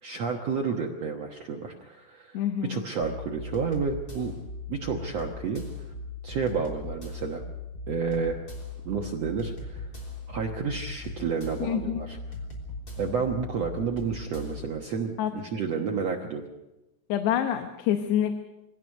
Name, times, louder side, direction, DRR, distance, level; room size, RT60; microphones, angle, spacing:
voice 1, 0.0-4.3 4.7-5.6 6.2-7.4 7.9-8.4 8.8-9.9 10.3-12.2 13.0-16.4, right 5 dB, 75° right, 1 dB, 1.5 m, -30 dB
voice 2, 2.3-2.8 11.6-12.0 15.2-15.3 17.1-18.4, left 10 dB, 80° left, 7 dB, 3.1 m, -26 dB
sound 1, 3.0-14.7, left 3 dB, 25° left, 3.4 m, -39 dB
24.0 x 17.0 x 6.4 m, 0.98 s
omnidirectional pair, 5.0 m